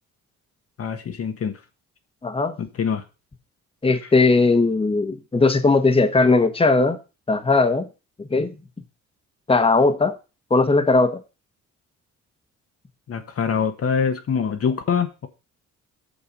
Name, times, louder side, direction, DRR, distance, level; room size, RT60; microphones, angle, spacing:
voice 1, 0.8-1.6 2.6-3.0 13.1-15.3, left 6 dB, 50° left, 1.2 m, -24 dB
voice 2, 2.2-2.5 3.8-7.0 7.3-7.9 8.2-8.5 9.5-10.1 10.5-11.2, left 3 dB, 20° left, 1.2 m, -18 dB
7.2 x 6.9 x 5.2 m
cardioid pair, 90°, 30 cm